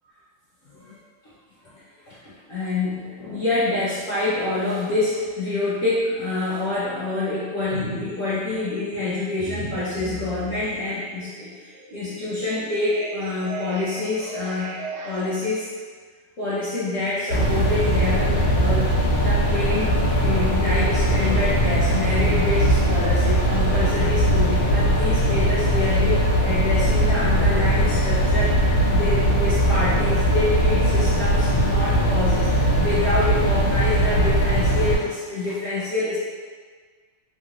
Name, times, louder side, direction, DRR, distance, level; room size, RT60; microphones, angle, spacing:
voice 1, 2.1-14.7 15.0-15.7 16.4-19.0 19.2-32.5 32.8-36.2, left 2 dB, 75° left, -10 dB, 0.7 m, -27 dB
sound 1, 7.7-8.1 8.5-15.4, right 3 dB, 65° right, 1.2 m, -37 dB
sound 2, 17.3-35.0, equal, 60° left, 1.6 m, -20 dB
3.6 x 3.0 x 2.5 m, 1.5 s
omnidirectional pair, 2.4 m